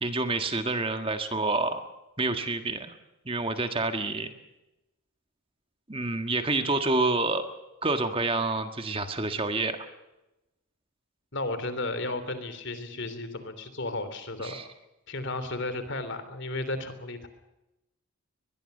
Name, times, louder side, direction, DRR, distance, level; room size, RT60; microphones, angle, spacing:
voice 1, 0.0-1.8 2.2-2.9 3.3-4.3 5.9-7.5 7.8-9.8 14.4-14.7, right 3 dB, 25° right, 7 dB, 1.6 m, -28 dB
voice 2, 11.3-14.6 15.1-17.3, left 2 dB, 55° left, 11 dB, 3.2 m, -33 dB
22.5 x 22.0 x 6.7 m, 0.97 s
head